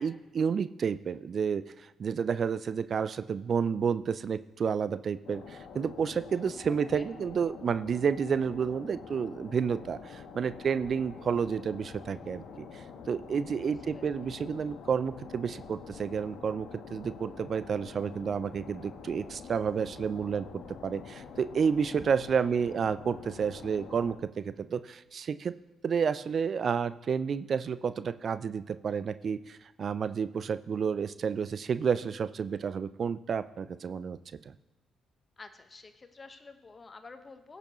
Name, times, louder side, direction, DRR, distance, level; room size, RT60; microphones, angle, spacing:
voice 1, 0.0-25.5 25.8-34.2, right 6 dB, 55° right, 14 dB, 0.4 m, -30 dB
sound 1, 5.2-24.2, left 6 dB, 70° left, 1.1 m, -47 dB
voice 2, 13.6-14.0 22.3-22.5 35.4-37.6, left 3 dB, 35° left, 9 dB, 1.1 m, -50 dB
16.5 x 6.8 x 3.0 m, 1.1 s
hypercardioid pair, 45°, 0 cm